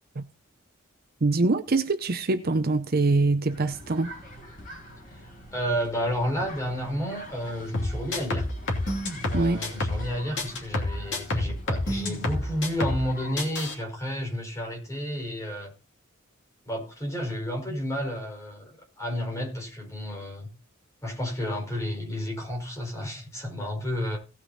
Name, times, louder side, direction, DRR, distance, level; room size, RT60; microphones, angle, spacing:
voice 1, 1.2-4.1 9.3-9.6, right 3 dB, 45° right, 0.7 m, -24 dB
sound 1, 3.4-13.4, left 1 dB, 40° left, 5.4 m, -45 dB
voice 2, 5.1-8.5 9.3-15.7 16.6-20.5 21.0-24.2, equal, 15° left, 4.7 m, -31 dB
sound 2, 7.7-10.1 10.4-13.1 13.4-13.7, left 2 dB, 55° left, 2.8 m, -29 dB
17.5 x 6.2 x 4.1 m
head